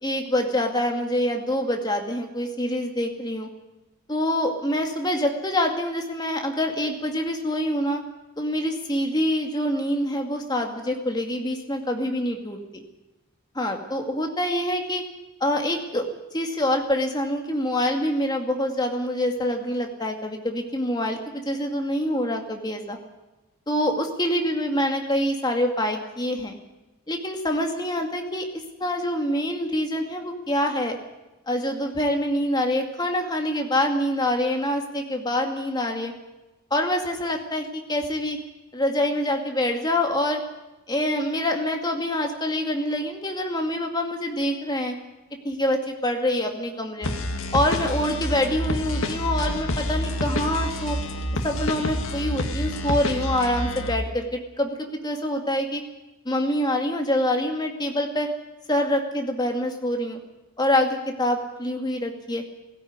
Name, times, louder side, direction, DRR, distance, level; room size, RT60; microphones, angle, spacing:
voice 1, 0.0-3.5 4.1-8.0 8.4-12.8 13.5-15.0 15.4-16.1 16.3-23.0 23.7-26.6 27.1-31.0 31.5-36.1 36.7-38.4 38.7-40.4 40.9-44.9 45.4-47.2 47.5-51.0 51.4-55.8 56.3-58.3 58.7-60.2 60.6-62.4, left 1 dB, 20° left, 3 dB, 2.3 m, -25 dB
sound 1, 47.0-54.0, left 1 dB, 70° left, 2.0 m, -28 dB
17.5 x 16.5 x 9.6 m, 1.0 s
head